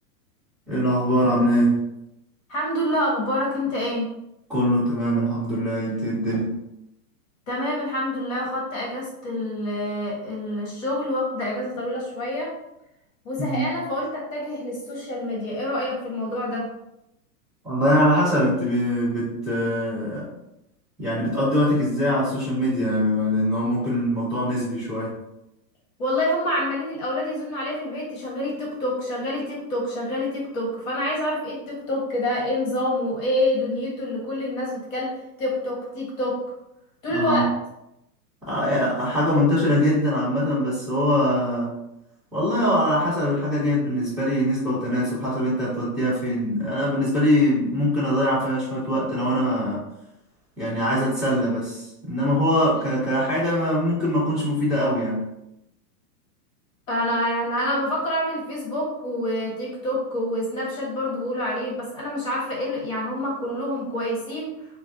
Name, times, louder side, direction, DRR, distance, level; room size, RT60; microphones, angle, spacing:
voice 1, 0.7-1.8 4.5-6.6 13.4-13.7 17.6-20.3 21.0-25.1 37.1-37.4 38.4-41.7 42.3-49.8 50.6-55.3, equal, 5° right, -13 dB, 1.4 m, -22 dB
voice 2, 2.5-4.1 7.5-12.5 13.2-16.6 26.0-35.1 35.4-36.4 37.0-37.5 56.9-64.5, left 1 dB, 55° left, -3 dB, 1.2 m, -27 dB
4.1 x 2.2 x 2.5 m, 0.86 s
supercardioid pair, 175°, 48 cm